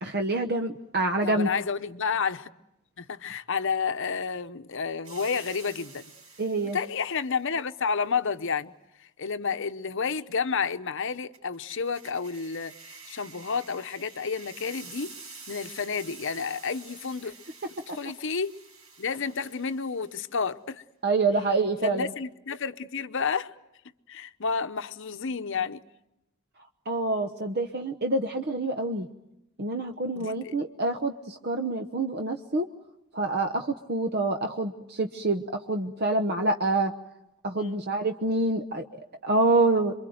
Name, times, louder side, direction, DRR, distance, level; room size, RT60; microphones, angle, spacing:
voice 1, 0.0-1.5 6.4-6.8 21.0-22.1 26.9-29.1 29.6-32.7 33.1-36.9 37.4-38.8 39.2-39.9, right 2 dB, 50° right, 1.0 m, -26 dB
voice 2, 1.2-2.5 3.0-6.1 6.6-8.7 9.2-15.1 15.5-17.3 17.9-18.5 19.0-20.8 21.8-23.5 24.1-25.8 30.2-30.5 37.6-37.8, left 5 dB, 60° left, 0.9 m, -30 dB
sound 1, 5.0-7.4 11.3-20.3, right 4 dB, 75° right, 6.9 m, -48 dB
27.5 x 23.5 x 7.9 m
head